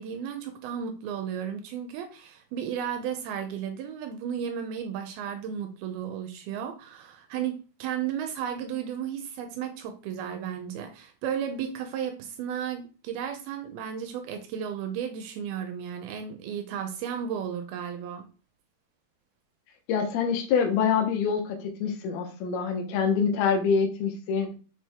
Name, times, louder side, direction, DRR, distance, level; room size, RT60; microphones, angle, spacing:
voice 1, 0.0-18.3, right 8 dB, 80° right, 6 dB, 2.5 m, -34 dB
voice 2, 19.9-24.5, left 6 dB, 80° left, 3 dB, 2.9 m, -25 dB
6.3 x 4.4 x 3.5 m, 0.35 s
omnidirectional pair, 4.4 m